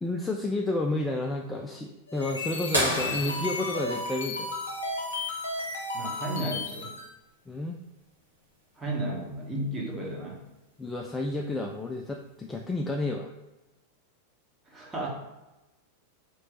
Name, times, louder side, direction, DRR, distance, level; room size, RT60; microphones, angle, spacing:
voice 1, 0.0-4.6 7.5-7.8 10.8-13.3, left 2 dB, 10° left, 2 dB, 0.4 m, -31 dB
sound 1, 2.1-7.1, left 3 dB, 75° left, 0.7 m, -34 dB
sound 2, 2.7-5.2 7.1-7.2 9.4-9.5 11.2-11.5 12.3-12.4, equal, 85° right, 1.4 m, -31 dB
voice 2, 5.9-7.0 8.8-10.4 14.6-15.1, right 1 dB, 10° right, -4 dB, 1.3 m, -33 dB
4.4 x 3.1 x 3.8 m, 1.0 s
figure-of-eight pair, 90°, 0 cm